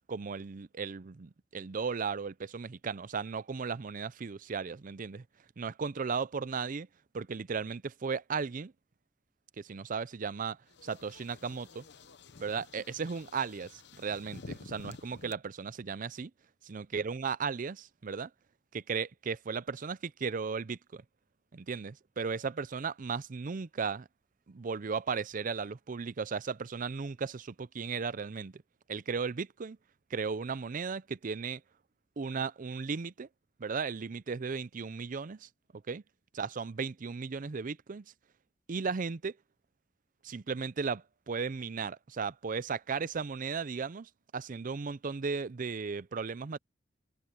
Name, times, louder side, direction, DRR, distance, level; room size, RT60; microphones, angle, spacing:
voice 1, 0.1-5.2 5.6-6.9 7.1-8.7 9.6-11.8 12.4-16.3 16.7-18.3 18.7-21.0 21.5-24.1 24.5-28.6 28.9-29.8 30.1-31.6 32.2-33.3 33.6-36.0 36.3-38.1 38.7-39.4 40.2-46.6, right 5 dB, 45° right, 0.5 m, -36 dB
sound 1, 10.7-15.3, left 3 dB, 65° left, 0.8 m, -50 dB
head